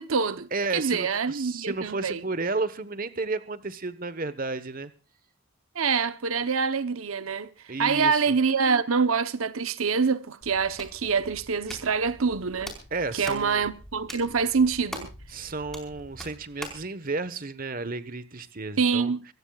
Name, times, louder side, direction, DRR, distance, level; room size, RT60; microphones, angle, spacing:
voice 1, 0.0-2.2 5.7-7.5 7.8-12.7 13.1-15.1 18.8-19.2, right 5 dB, 85° right, 0.9 m, -25 dB
voice 2, 0.5-4.9 7.7-8.3 12.9-13.7 15.3-19.1, right 3 dB, 40° right, 1.2 m, -32 dB
Hands, 10.4-16.9, equal, ahead, 4.7 m, -44 dB
26.0 x 16.5 x 2.4 m
head